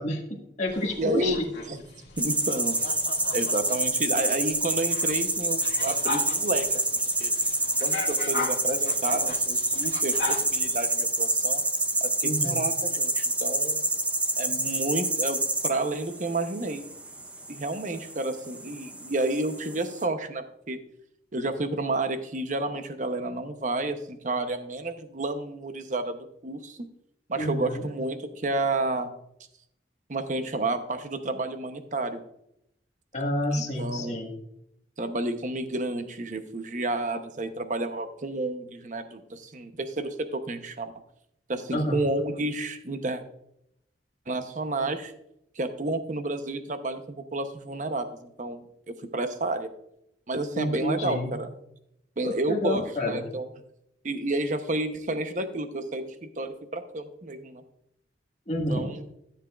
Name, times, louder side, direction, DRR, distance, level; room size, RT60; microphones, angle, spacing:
voice 1, 0.0-1.3 12.2-12.6 27.3-27.8 33.1-34.3 41.7-42.0 50.5-51.3 52.2-53.2 58.5-58.9, left 1 dB, 40° left, -2 dB, 1.7 m, -29 dB
sound 1, 0.7-10.7, left 3 dB, 75° left, 1.8 m, -39 dB
voice 2, 1.0-1.4 1.7-1.8 2.2-2.8 3.3-6.8 7.2-7.3 7.8-11.6 12.0-13.9 14.4-16.8 17.5-20.8 21.3-26.8 27.3-29.1 30.1-32.2 33.5-34.2 35.0-40.9 41.5-43.2 44.3-45.1 45.6-47.0 47.3-49.7 50.3-51.5 52.2-53.5 54.0-57.6 58.7-59.1, right 2 dB, 45° right, 8 dB, 0.8 m, -30 dB
sound 2, 2.2-20.0, right 2 dB, 10° right, 0.5 m, -28 dB
13.5 x 7.4 x 2.4 m, 0.76 s
head